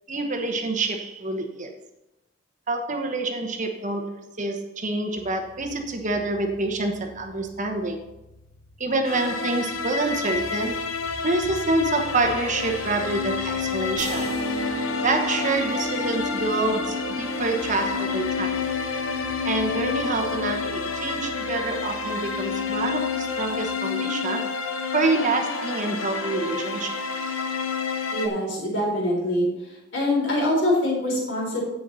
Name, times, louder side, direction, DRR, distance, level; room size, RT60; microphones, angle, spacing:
voice 1, 0.1-1.7 2.7-8.0 8.8-10.8 11.2-14.3 15.0-18.5 19.4-24.5 24.9-27.0, right 2 dB, 40° right, 4 dB, 1.1 m, -27 dB
sound 1, 5.2-23.6, left 1 dB, 45° left, 1.4 m, -47 dB
sound 2, 9.0-28.3, left 5 dB, 85° left, 1.0 m, -29 dB
sound 3, 14.0-23.6, equal, 30° left, 2.5 m, -35 dB
voice 2, 28.1-29.5 29.9-31.6, left 1 dB, 60° left, -3 dB, 4.0 m, -24 dB
10.0 x 8.4 x 4.1 m, 0.94 s
head